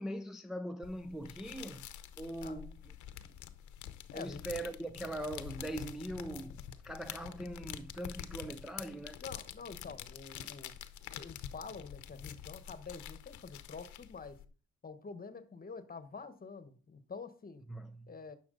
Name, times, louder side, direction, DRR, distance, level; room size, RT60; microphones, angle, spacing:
voice 1, 0.0-1.9 2.2-3.0 4.1-9.2 17.7-18.2, right 1 dB, ahead, 0.5 m, -41 dB
sound 1, 0.8-14.4, left 10 dB, 75° left, 0.9 m, -47 dB
voice 2, 4.1-4.4 9.2-10.7 11.1-14.4 14.8-17.6 18.1-18.4, left 4 dB, 30° left, 1.2 m, -47 dB
10.5 x 6.0 x 3.9 m
cardioid pair, 90°, 30 cm